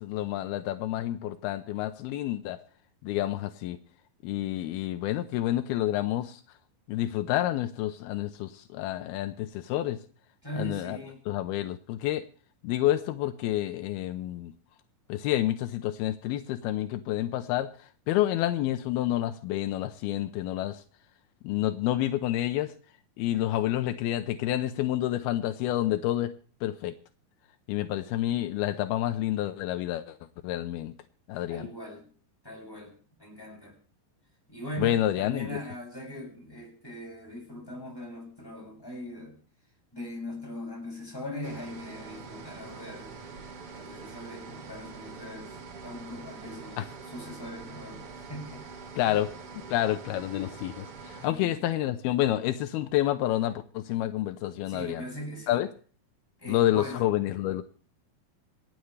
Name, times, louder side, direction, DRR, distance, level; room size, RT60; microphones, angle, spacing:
voice 1, 0.0-2.6 3.0-3.8 4.2-6.4 6.9-10.0 10.6-11.0 11.3-12.2 12.6-14.5 15.1-17.7 18.1-20.8 21.4-22.7 23.2-26.3 26.6-26.9 27.7-30.2 30.4-30.9 31.3-31.7 34.8-35.6 46.8-46.9 49.0-49.3 49.7-55.0 55.5-55.7 56.5-57.6, left 13 dB, 85° left, 9 dB, 2.7 m, -29 dB
voice 2, 10.4-11.2 31.5-32.1 32.4-32.9 33.2-33.8 34.5-39.4 39.9-43.3 43.7-45.5 45.8-48.6 51.2-51.6 54.7-55.7 56.4-57.0, equal, 5° left, -1 dB, 6.5 m, -40 dB
sound 1, 41.4-51.3, right 4 dB, 50° right, 2.0 m, -44 dB
27.0 x 9.3 x 3.3 m, 0.41 s
omnidirectional pair, 4.4 m